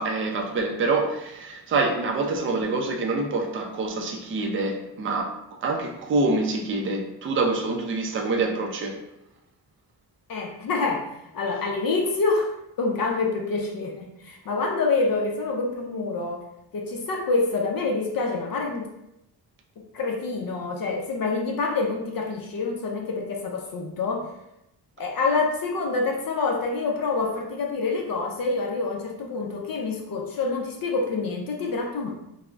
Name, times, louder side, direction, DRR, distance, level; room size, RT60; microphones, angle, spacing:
voice 1, 0.0-5.4 5.6-9.0, right 3 dB, 30° right, 0.4 m, -26 dB
voice 2, 10.3-16.4 16.7-18.9 19.9-24.3 25.0-32.1, left 3 dB, 55° left, 0.5 m, -27 dB
2.4 x 2.0 x 3.2 m
wide cardioid pair, 110°, 43 cm